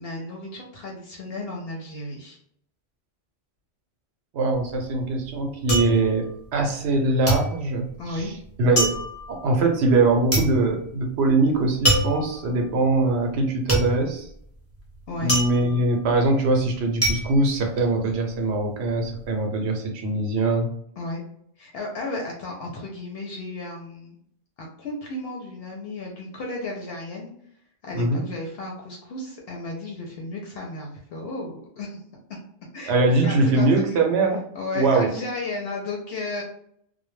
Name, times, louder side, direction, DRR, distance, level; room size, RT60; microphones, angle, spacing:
voice 1, 0.0-2.4 8.0-8.3 15.1-15.3 21.0-21.2 21.6-24.2 24.6-27.3 27.8-32.0 32.7-34.0 34.5-36.4, left 2 dB, 70° left, -1 dB, 0.8 m, -34 dB
voice 2, 4.3-8.3 8.6-9.0 9.3-14.3 15.2-20.7 27.9-28.2 32.8-34.4 34.7-35.1, right 2 dB, 80° right, 3 dB, 0.9 m, -22 dB
sound 1, 4.6-7.0 7.3-18.4 18.7-19.3, right 1 dB, 15° left, 0.7 m, -27 dB
2.1 x 2.1 x 3.1 m, 0.67 s
omnidirectional pair, 1.1 m